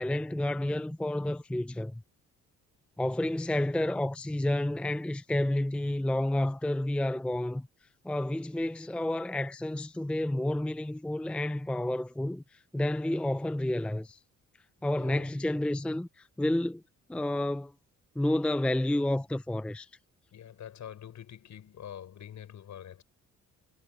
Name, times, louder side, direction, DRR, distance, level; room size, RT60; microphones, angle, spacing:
voice 1, 0.0-2.0 3.0-7.7 8.0-14.2 14.8-16.8 17.1-17.7 18.2-19.9, left 1 dB, 5° left, 0.5 m, -30 dB
voice 2, 14.9-15.3 20.3-23.0, left 9 dB, 70° left, 6.4 m, -45 dB
cardioid pair, 110°, 30 cm